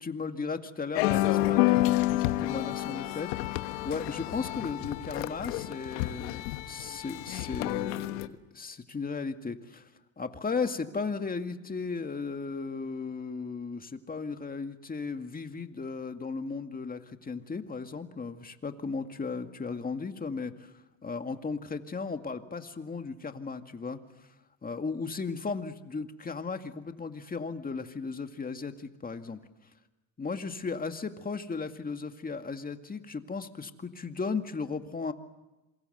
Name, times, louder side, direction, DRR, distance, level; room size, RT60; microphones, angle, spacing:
voice 1, 0.0-3.3 3.8-9.9 10.2-20.7 21.0-24.0 24.6-29.4 30.2-35.1, left 4 dB, 20° left, 7 dB, 2.1 m, -36 dB
sound 1, 0.9-8.3, left 17 dB, 85° left, 1.4 m, -29 dB
27.0 x 23.0 x 8.0 m, 1.1 s
supercardioid pair, 100°, 42 cm